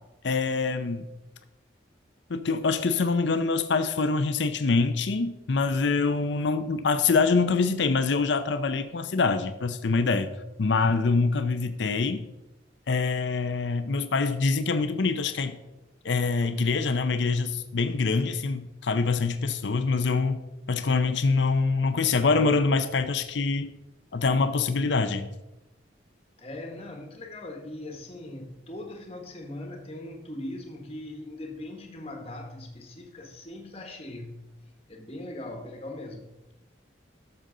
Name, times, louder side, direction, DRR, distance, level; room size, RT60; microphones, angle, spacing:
voice 1, 0.2-1.0 2.3-10.3 10.6-12.2 12.9-15.6 16.0-20.4 20.7-23.7 24.1-25.3, left 4 dB, 75° left, 10 dB, 0.6 m, -25 dB
voice 2, 26.4-34.4 34.9-36.3, left 1 dB, 30° left, 3 dB, 1.2 m, -40 dB
12.5 x 6.8 x 3.8 m, 0.99 s
head